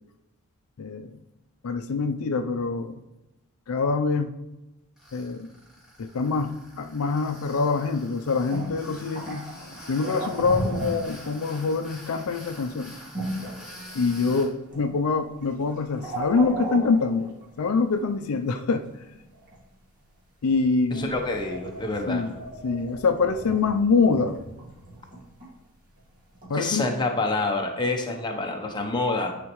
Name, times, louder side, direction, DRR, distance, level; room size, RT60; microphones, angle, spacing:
voice 1, 0.8-1.2 1.6-3.0 3.7-4.3 5.1-5.5 6.0-9.5 9.9-12.9 13.9-17.3 17.6-18.8 20.4-21.1 22.1-22.4 22.6-24.4 26.5-26.9, left 4 dB, 70° left, 7 dB, 0.4 m, -25 dB
Tools, 5.0-14.5, equal, 5° right, 2.2 m, -46 dB
sound 1, 8.5-11.6 12.1-12.2 13.1-14.4 14.7-15.1 15.4-17.8 19.1-19.6 20.5-20.6 20.9-25.5 26.3-26.5, right 1 dB, 40° right, 2.0 m, -35 dB
voice 2, 20.9-22.2 26.5-29.3, left 2 dB, 20° left, 2 dB, 0.8 m, -27 dB
9.9 x 4.2 x 3.0 m, 0.96 s
head